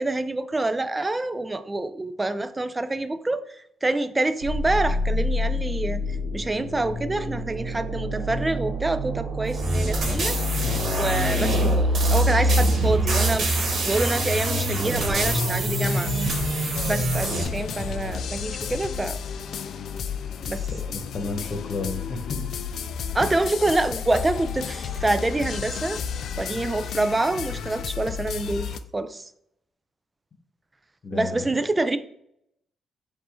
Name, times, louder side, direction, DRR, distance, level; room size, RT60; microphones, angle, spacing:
voice 1, 0.0-3.4 3.8-13.5 13.8-16.1 16.9-19.2 20.5-20.7 23.1-26.0 26.4-29.3 31.1-32.0, right 2 dB, 20° right, 11 dB, 0.4 m, -26 dB
sound 1, 4.4-18.2, equal, 80° right, 0.9 m, -26 dB
sound 2, 9.5-17.4, right 2 dB, 60° right, 1.2 m, -28 dB
sound 3, 15.2-28.8, left 7 dB, 70° left, 0.3 m, -32 dB
voice 2, 20.7-22.4 31.0-31.4, left 3 dB, 50° left, 5 dB, 1.0 m, -32 dB
4.6 x 2.5 x 4.3 m, 0.74 s
cardioid pair, 75°, 0 cm